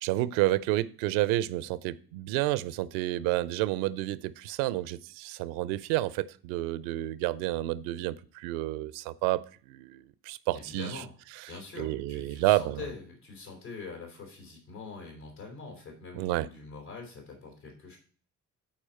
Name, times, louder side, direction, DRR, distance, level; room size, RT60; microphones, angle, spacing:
voice 1, 0.0-11.0 11.8-12.8 16.2-16.5, right 16 dB, 70° right, 0.6 m, -30 dB
voice 2, 10.5-11.1 11.5-18.0, left 4 dB, 80° left, 3.5 m, -44 dB
11.5 x 4.5 x 4.3 m
figure-of-eight pair, 45°, 45 cm